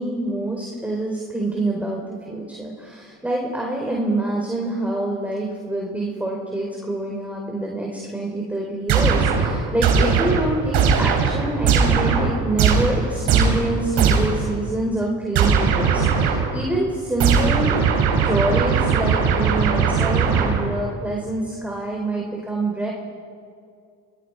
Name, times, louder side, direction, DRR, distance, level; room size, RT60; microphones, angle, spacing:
voice 1, 0.0-17.8 18.2-22.9, right 2 dB, 5° right, -2 dB, 4.7 m, -26 dB
sound 1, 8.9-14.5 15.3-16.6 17.2-20.9, right 6 dB, 70° right, 4.3 m, -19 dB
27.5 x 21.5 x 5.0 m, 2.3 s
supercardioid pair, 70°, 42 cm